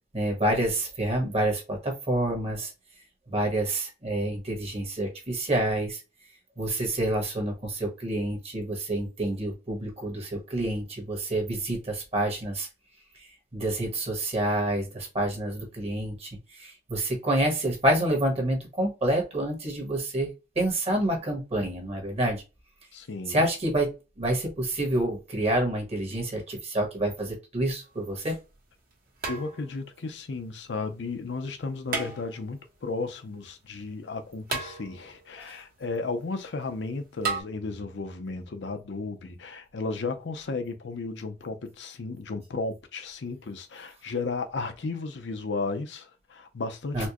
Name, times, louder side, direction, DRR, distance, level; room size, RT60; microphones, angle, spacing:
voice 1, 0.1-2.7 3.3-6.0 6.6-12.7 13.2-22.4 23.3-28.4 35.4-35.6 46.9-47.1, right 1 dB, 35° right, 1.3 m, -28 dB
voice 2, 22.9-23.5 29.3-47.1, left 3 dB, 80° left, 0.6 m, -34 dB
sound 1, 27.8-27.9 29.2-29.9 31.9-32.7 34.5-35.3 37.2-37.4, right 4 dB, 55° right, 1.2 m, -33 dB
4.3 x 2.1 x 2.9 m
head